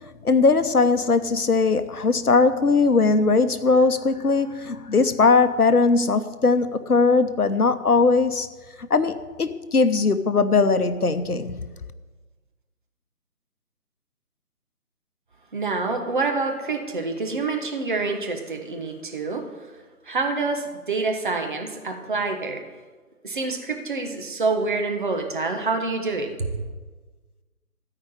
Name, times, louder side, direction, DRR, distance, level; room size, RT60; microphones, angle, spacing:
voice 1, 0.2-8.5 8.8-11.7, left 4 dB, 75° left, 11 dB, 1.0 m, -20 dB
voice 2, 15.5-19.4 20.1-22.6 23.2-26.5, right 3 dB, 35° right, 3 dB, 1.3 m, -27 dB
14.0 x 5.0 x 8.9 m, 1.3 s
figure-of-eight pair, 155°, 45 cm